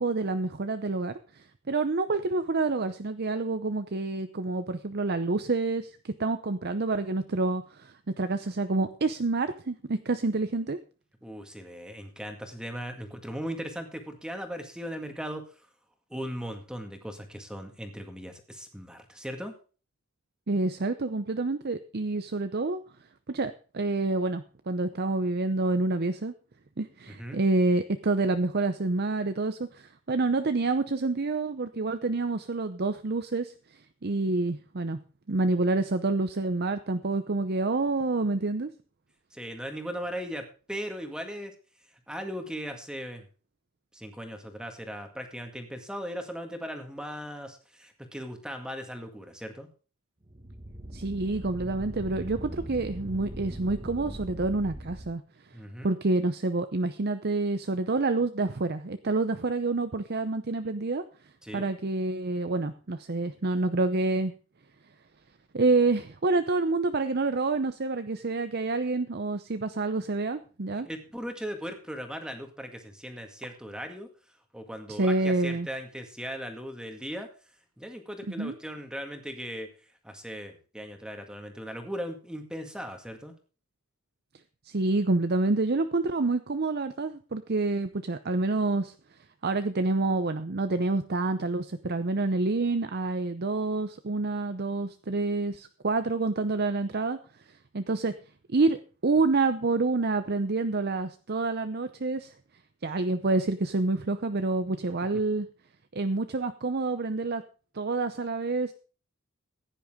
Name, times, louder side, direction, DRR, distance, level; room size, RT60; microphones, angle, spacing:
voice 1, 0.0-10.8 20.5-22.8 23.3-26.3 26.8-33.5 34.0-35.0 35.3-38.7 50.9-55.2 55.8-61.0 61.5-64.3 65.5-70.9 74.9-75.7 78.4-78.5 84.7-88.9 89.4-97.2 97.7-98.1 98.5-102.3 102.8-105.5 105.9-107.4 107.7-108.7, right 3 dB, 50° right, 10 dB, 0.7 m, -28 dB
voice 2, 11.2-15.5 16.1-19.5 27.1-27.4 39.3-41.5 42.1-43.3 43.9-49.7 55.5-55.9 61.4-61.7 70.9-74.1 74.5-77.3 77.8-83.3, equal, 5° right, 5 dB, 2.0 m, -38 dB
sound 1, 50.2-55.1, right 1 dB, 30° right, 1.7 m, -40 dB
15.5 x 10.0 x 3.7 m, 0.37 s
head